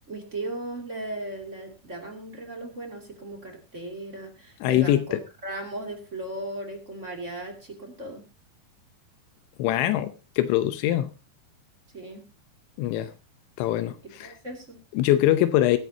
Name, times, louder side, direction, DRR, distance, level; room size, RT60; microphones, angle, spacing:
voice 1, 0.1-8.2 11.9-12.2 14.2-14.8, right 2 dB, 20° right, 2 dB, 2.1 m, -37 dB
voice 2, 4.6-5.2 9.6-11.1 12.8-13.1 13.6-14.3 14.9-15.8, left 13 dB, 85° left, 11 dB, 3.1 m, -23 dB
21.5 x 9.9 x 2.8 m, 0.28 s
omnidirectional pair, 5.2 m